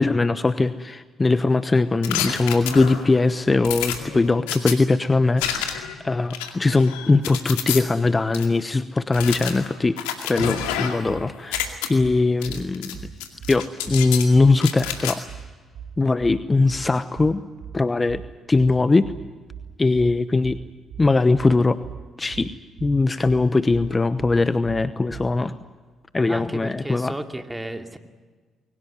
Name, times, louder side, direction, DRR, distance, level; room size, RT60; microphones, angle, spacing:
voice 1, 0.0-10.0 10.2-11.6 11.9-13.1 13.5-15.2 16.0-17.4 17.7-18.2 18.5-19.1 19.8-20.6 21.0-21.8 22.2-22.5 22.8-25.6 26.1-27.1, left 3 dB, 25° left, 14 dB, 1.0 m, -20 dB
sound 1, 2.0-3.1 3.6-4.7 5.4-5.9 6.3-7.8 8.3-8.5 9.1-11.1 11.4-11.9 12.4-12.9 13.2-14.3 14.6-15.1, left 10 dB, 80° left, 2.2 m, -29 dB
sound 2, 10.6-25.4, right 7 dB, 65° right, 2.5 m, -39 dB
voice 2, 26.3-28.0, right 1 dB, 10° right, 6 dB, 2.6 m, -33 dB
22.5 x 19.0 x 9.7 m, 1.4 s
hypercardioid pair, 45°, 0 cm